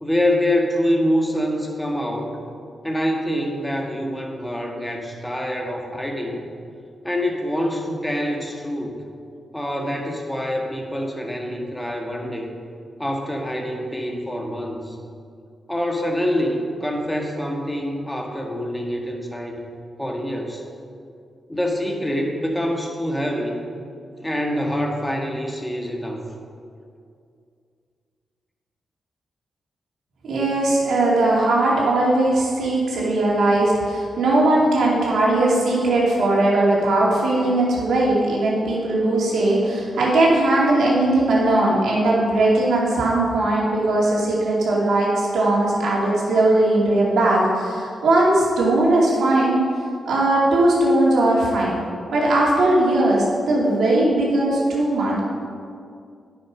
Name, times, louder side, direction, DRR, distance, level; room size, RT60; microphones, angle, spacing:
voice 1, 0.0-2.4 2.8-6.5 7.0-9.0 9.5-12.6 13.0-15.0 15.7-19.6 20.0-20.6 21.5-23.6 24.2-26.2, equal, 10° left, 1 dB, 1.9 m, -25 dB
voice 2, 30.3-49.6 50.0-51.8 52.1-55.2, right 2 dB, 75° right, -4 dB, 2.5 m, -19 dB
10.0 x 7.1 x 5.2 m, 2.4 s
supercardioid pair, 45°, 0 cm